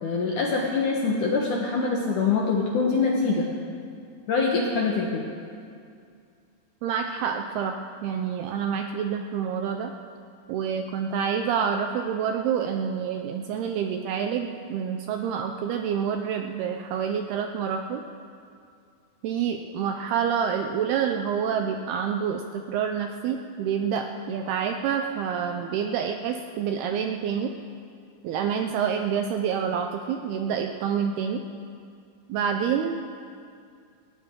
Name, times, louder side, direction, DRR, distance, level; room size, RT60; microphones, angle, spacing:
voice 1, 0.0-3.5 4.3-5.2, left 4 dB, 65° left, -2 dB, 2.0 m, -24 dB
voice 2, 6.8-9.9 10.5-18.0 19.2-27.5 28.2-31.4 32.3-33.0, right 7 dB, 80° right, 4 dB, 2.3 m, -27 dB
19.5 x 17.5 x 3.7 m, 2.3 s
omnidirectional pair, 5.1 m